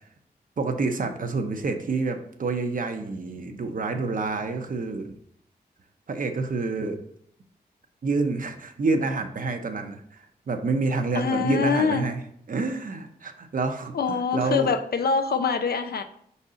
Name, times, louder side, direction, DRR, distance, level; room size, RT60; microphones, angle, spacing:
voice 1, 0.6-5.1 6.1-7.0 8.0-12.2 12.5-14.7, right 3 dB, 55° right, 0.9 m, -28 dB
voice 2, 11.1-12.1 13.9-16.0, left 5 dB, 70° left, 0.7 m, -24 dB
5.2 x 4.1 x 5.0 m
cardioid pair, 65°, 17 cm